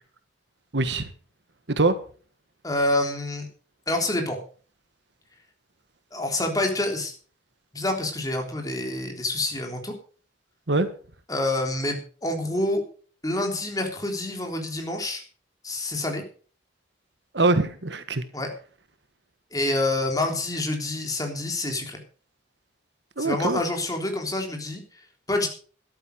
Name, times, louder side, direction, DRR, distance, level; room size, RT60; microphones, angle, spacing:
voice 1, 0.7-1.1 1.7-1.9 10.7-10.9 17.3-18.2 23.2-23.6, right 2 dB, 70° right, 11 dB, 1.4 m, -23 dB
voice 2, 2.6-3.5 3.9-4.4 6.1-7.1 7.7-9.9 11.3-12.8 13.2-15.2 15.6-16.2 18.3-18.5 19.5-22.0 23.2-24.8 25.3-25.5, left 2 dB, 20° left, 3 dB, 3.4 m, -27 dB
13.5 x 12.0 x 5.2 m, 0.41 s
head